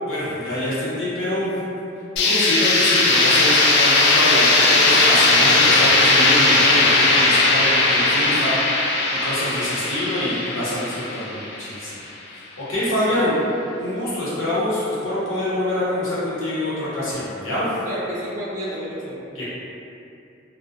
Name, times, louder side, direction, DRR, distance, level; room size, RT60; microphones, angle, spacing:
voice 1, 0.1-1.5 2.3-8.9 9.2-11.9 12.3-13.4 13.8-17.7 19.3-19.4, left 1 dB, 80° left, -9 dB, 0.8 m, -25 dB
sound 1, 2.2-11.9, left 2 dB, 55° left, 0.3 m, -18 dB
voice 2, 17.8-19.4, equal, 40° right, -7 dB, 0.5 m, -31 dB
2.4 x 2.1 x 2.6 m, 2.6 s
head